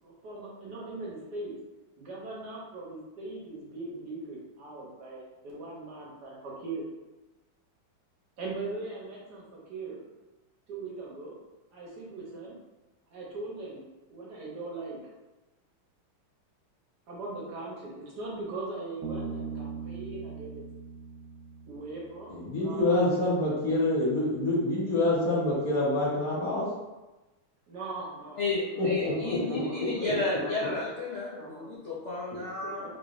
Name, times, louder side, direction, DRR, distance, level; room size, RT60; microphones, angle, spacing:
voice 1, 0.0-1.5 2.0-6.9 8.4-10.0 10.7-11.3 11.7-12.6 13.1-13.8 14.1-15.0 17.1-20.6 21.6-23.3 27.7-28.4 28.7-31.8 32.8-32.9, right 2 dB, 65° right, -4 dB, 1.2 m, -40 dB
Bass guitar, 19.0-22.6, right 5 dB, 90° right, 1.4 m, -40 dB
voice 2, 22.3-26.7 28.8-29.9, left 1 dB, 60° left, -6 dB, 1.1 m, -27 dB
voice 3, 28.4-32.9, left 3 dB, 85° left, -8 dB, 0.6 m, -32 dB
3.7 x 3.2 x 2.4 m, 1.1 s
omnidirectional pair, 2.2 m